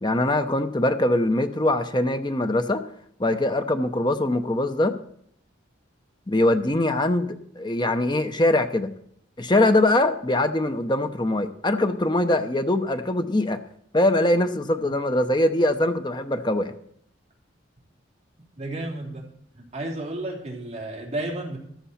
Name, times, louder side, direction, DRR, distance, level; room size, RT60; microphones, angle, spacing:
voice 1, 0.0-2.8 3.2-4.9 6.3-8.9 9.4-13.6 13.9-16.7, left 1 dB, 20° left, 8 dB, 0.8 m, -22 dB
voice 2, 18.6-19.2 19.7-21.6, right 1 dB, 30° right, -1 dB, 3.0 m, -32 dB
14.0 x 12.5 x 4.3 m, 0.69 s
head